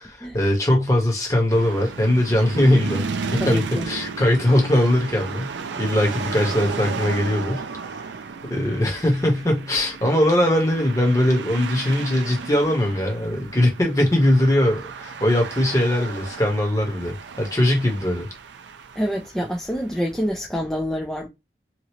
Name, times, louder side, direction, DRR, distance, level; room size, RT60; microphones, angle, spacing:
voice 1, 0.0-3.0 3.3-5.5 5.8-7.6 8.5-18.3, left 1 dB, 20° left, 1.1 m, -20 dB
sound 1, 1.5-19.9, right 5 dB, 85° right, 0.4 m, -34 dB
voice 2, 3.4-3.9 19.0-21.3, equal, 5° left, 0.4 m, -26 dB
3.0 x 2.6 x 2.8 m
head